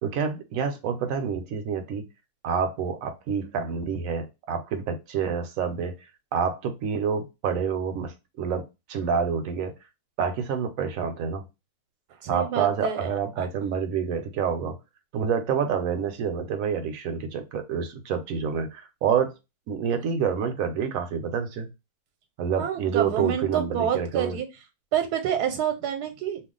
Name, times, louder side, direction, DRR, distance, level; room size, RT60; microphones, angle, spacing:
voice 1, 0.0-2.1 2.4-5.9 6.3-8.6 8.9-9.7 10.2-11.5 12.3-14.8 15.1-19.3 19.7-21.7 22.4-24.4, right 6 dB, 70° right, 0.9 m, -28 dB
voice 2, 12.2-13.5 22.6-24.5 24.9-26.4, right 9 dB, 85° right, 1.1 m, -28 dB
2.5 x 2.3 x 3.6 m
omnidirectional pair, 1.7 m